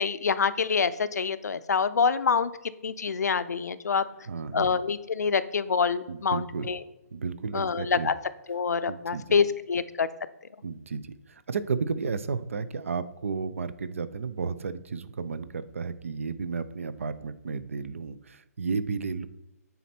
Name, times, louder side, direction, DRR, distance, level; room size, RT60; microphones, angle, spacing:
voice 1, 0.0-2.5 2.8-4.0 4.5-6.8 7.5-8.1 8.5-10.1, left 5 dB, 75° left, 14 dB, 0.5 m, -26 dB
voice 2, 4.3-4.7 6.1-6.7 7.1-8.1 8.9-9.4 10.6-19.3, right 5 dB, 55° right, 14 dB, 0.5 m, -33 dB
9.2 x 4.2 x 4.4 m, 0.93 s
hypercardioid pair, 180°, 9 cm